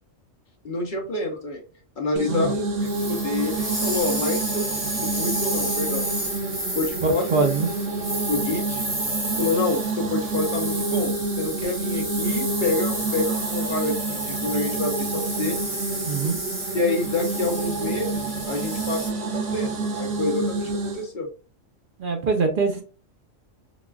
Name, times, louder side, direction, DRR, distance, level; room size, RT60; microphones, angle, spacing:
voice 1, 0.6-1.6 2.0-2.6 3.0-4.7 5.0-6.1 6.7-7.4 8.3-8.8 9.4-15.6 16.7-21.3, left 3 dB, 45° left, 1 dB, 0.8 m, -28 dB
sound 1, 2.2-21.1, right 3 dB, 70° right, 1.1 m, -29 dB
sound 2, 2.8-19.1, right 1 dB, 15° right, 0.9 m, -31 dB
voice 2, 7.0-7.7 16.0-16.4 22.0-22.8, right 4 dB, 50° right, 4 dB, 0.7 m, -23 dB
3.9 x 2.3 x 2.3 m, 0.35 s
omnidirectional pair, 1.4 m